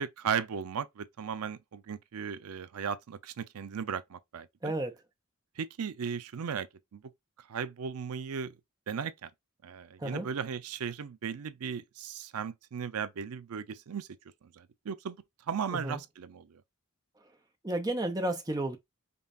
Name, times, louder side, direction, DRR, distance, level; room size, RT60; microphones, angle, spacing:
voice 1, 0.0-4.7 5.6-6.7 6.9-7.0 7.5-8.5 8.9-9.3 9.6-14.1 14.5-15.2 15.5-16.6, right 7 dB, 85° right, 0.5 m, -36 dB
voice 2, 4.6-4.9 10.0-10.3 15.7-16.0 17.6-18.8, right 1 dB, 15° right, 0.7 m, -32 dB
5.3 x 2.3 x 2.5 m
head